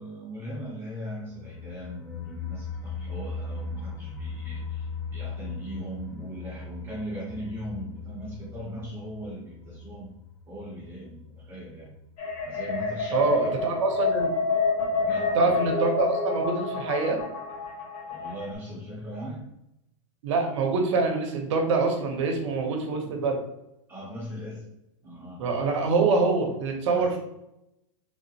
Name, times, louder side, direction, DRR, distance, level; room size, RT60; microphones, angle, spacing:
voice 1, 0.0-10.1 10.5-11.9 12.4-13.8 15.0-15.7 18.1-19.5 23.9-24.7 25.0-25.5 26.8-27.1, equal, 15° right, -9 dB, 0.7 m, -39 dB
sound 1, 1.3-12.0 12.3-12.4 12.7-12.8, left 4 dB, 10° left, 0.3 m, -39 dB
sound 2, 12.2-18.6, left 3 dB, 75° left, 1.1 m, -28 dB
voice 2, 13.1-14.3 15.3-17.2 20.2-23.4 25.4-27.2, right 4 dB, 65° right, 2 dB, 0.8 m, -25 dB
3.4 x 2.1 x 2.7 m, 0.84 s
supercardioid pair, 155°, 17 cm